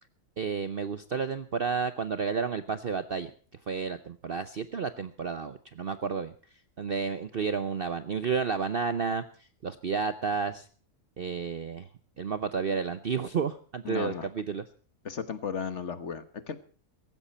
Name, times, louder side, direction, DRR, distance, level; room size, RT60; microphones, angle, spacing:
voice 1, 0.4-3.3 3.7-6.3 6.8-10.7 11.2-11.9 12.2-14.6, right 5 dB, 45° right, 11 dB, 0.8 m, -31 dB
voice 2, 13.8-14.3 15.0-16.6, left 6 dB, 50° left, 12 dB, 1.5 m, -35 dB
16.5 x 15.5 x 4.2 m, 0.41 s
omnidirectional pair, 1.6 m